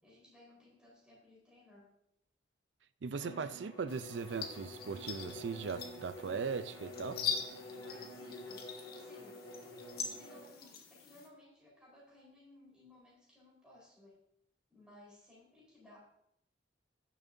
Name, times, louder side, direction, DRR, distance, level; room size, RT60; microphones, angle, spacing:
voice 1, 0.0-1.9 7.9-9.5 10.0-14.2 14.7-16.0, left 1 dB, 5° right, 4.3 m, -60 dB
voice 2, 3.0-7.2, right 5 dB, 75° right, 0.5 m, -39 dB
Bowed string instrument, 3.1-10.5, left 1 dB, 25° left, 2.7 m, -49 dB
sound 1, 3.9-11.3, left 6 dB, 55° left, 1.3 m, -43 dB
16.0 x 7.3 x 2.7 m
head